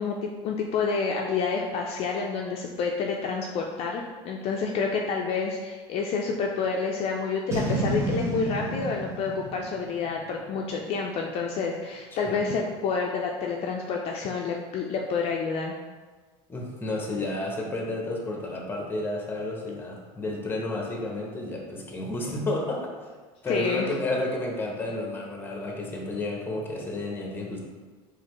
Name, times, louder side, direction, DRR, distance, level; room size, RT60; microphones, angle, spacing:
voice 1, 0.0-15.7 23.5-23.9, left 5 dB, 50° left, 0 dB, 0.4 m, -29 dB
Boom, 7.5-10.8, right 1 dB, 20° right, 0.8 m, -31 dB
voice 2, 16.5-22.9 23.4-27.6, left 2 dB, 15° left, 0 dB, 0.8 m, -31 dB
4.0 x 2.5 x 3.0 m, 1.4 s
supercardioid pair, 110°, 13 cm